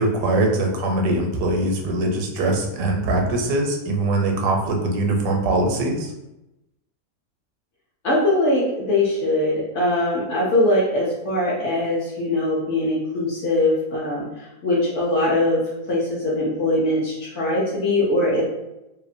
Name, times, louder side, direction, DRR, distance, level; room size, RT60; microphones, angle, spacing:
voice 1, 0.0-6.1, right 2 dB, 85° right, 2 dB, 1.1 m, -22 dB
voice 2, 8.0-14.2 14.6-15.6 15.9-18.4, left 1 dB, 60° left, -5 dB, 0.8 m, -21 dB
2.7 x 2.0 x 2.5 m, 0.93 s
omnidirectional pair, 1.7 m